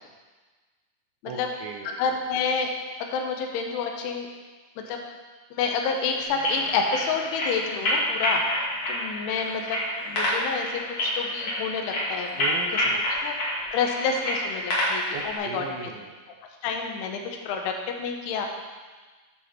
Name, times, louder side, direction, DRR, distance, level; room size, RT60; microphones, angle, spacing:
voice 1, 1.2-2.2 12.4-13.0 15.1-16.2, right 5 dB, 80° right, 2 dB, 2.7 m, -38 dB
voice 2, 2.0-2.7 3.0-4.3 4.8-5.0 5.5-8.4 8.9-9.8 10.1-10.7 11.0-12.4 13.2-13.3 13.7-15.6 16.6-18.5, left 5 dB, 80° left, 3 dB, 2.9 m, -28 dB
sound 1, 6.3-15.4, left 1 dB, 55° left, 1.8 m, -28 dB
9.2 x 6.1 x 4.3 m, 1.4 s
omnidirectional pair, 5.9 m